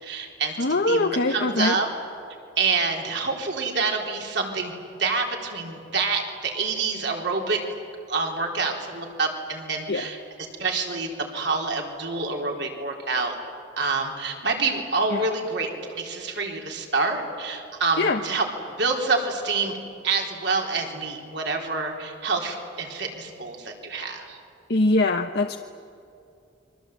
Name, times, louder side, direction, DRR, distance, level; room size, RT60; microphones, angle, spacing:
voice 1, 0.0-0.6 0.9-1.9 2.6-4.7 5.0-7.6 8.1-10.2 10.6-13.3 13.8-18.4 18.8-19.8 20.0-24.4, right 4 dB, 60° right, 1 dB, 3.9 m, -27 dB
voice 2, 0.6-1.8 9.9-10.1 15.1-15.2 18.0-18.2 24.7-25.6, left 2 dB, 55° left, 5 dB, 0.9 m, -22 dB
29.5 x 24.0 x 8.3 m, 2.5 s
head